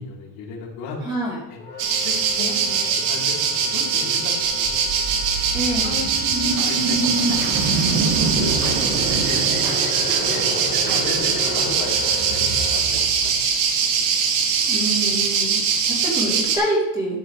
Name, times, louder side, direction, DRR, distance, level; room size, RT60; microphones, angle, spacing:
voice 1, 0.0-1.2 1.5-5.0 5.8-6.0 6.4-7.8 8.2-9.8 10.2-13.7, left 4 dB, 60° left, -4 dB, 3.6 m, -36 dB
voice 2, 1.0-1.4 5.5-6.0 14.7-17.2, right 1 dB, 10° right, -6 dB, 3.2 m, -26 dB
Wind instrument woodwind instrument, 1.6-12.8, left 4 dB, 25° left, 0.9 m, -38 dB
sound 1, 1.8-16.6, right 6 dB, 85° right, 2.3 m, -22 dB
sound 2, 4.4-13.6, right 3 dB, 45° right, 1.9 m, -27 dB
13.0 x 10.0 x 3.2 m, 0.92 s
cardioid pair, 180°, 45 cm